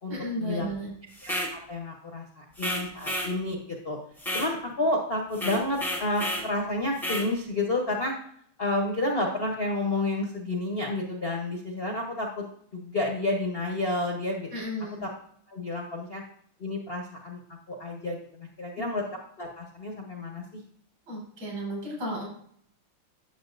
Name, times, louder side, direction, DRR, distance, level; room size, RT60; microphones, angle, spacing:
voice 1, 0.1-0.9 14.5-15.0 21.1-22.3, equal, 70° right, -3 dB, 4.6 m, -34 dB
voice 2, 1.2-4.0 4.3-8.1 8.6-12.4 12.7-14.5 15.0-15.1 15.5-16.2 16.6-17.4 17.7-19.0 19.4-20.6, left 2 dB, 45° left, 1 dB, 0.7 m, -30 dB
sound 1, 1.2-1.5 2.6-3.3 4.2-4.5 5.3-6.5 7.0-7.3, equal, ahead, 0.5 m, -31 dB
9.6 x 6.9 x 2.5 m, 0.63 s
omnidirectional pair, 2.3 m